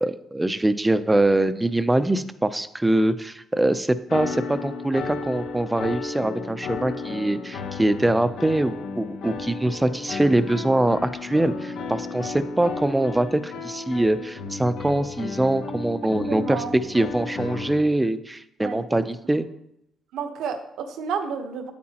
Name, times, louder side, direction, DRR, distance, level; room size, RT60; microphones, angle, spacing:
voice 1, 0.0-19.5, right 1 dB, 10° right, 12 dB, 0.5 m, -23 dB
sound 1, 4.1-17.8, left 4 dB, 85° left, 1.0 m, -33 dB
voice 2, 16.3-16.7 18.6-18.8 19.2-19.4 20.1-21.7, right 6 dB, 80° right, 6 dB, 1.0 m, -31 dB
8.5 x 8.5 x 2.9 m, 0.80 s
cardioid pair, 90°, 0 cm